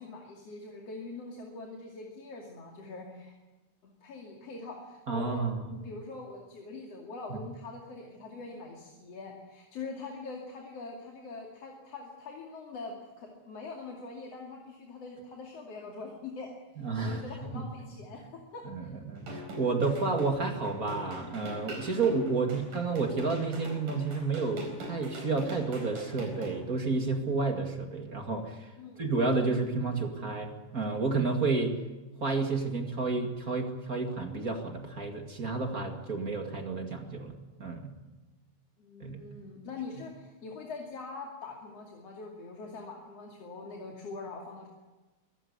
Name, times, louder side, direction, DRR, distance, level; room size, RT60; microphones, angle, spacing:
voice 1, 0.0-3.3 4.0-18.9 28.8-29.1 38.8-44.7, left 3 dB, 50° left, 0 dB, 3.5 m, -43 dB
voice 2, 5.1-5.5 7.3-7.4 16.8-17.2 17.5-17.6 18.6-28.7 29.0-31.8 32.2-37.9 39.0-39.4, right 3 dB, 30° right, 4 dB, 2.1 m, -31 dB
sound 1, 19.2-26.5, right 1 dB, 80° right, 5.7 m, -43 dB
24.0 x 15.0 x 9.6 m, 1.2 s
omnidirectional pair, 3.6 m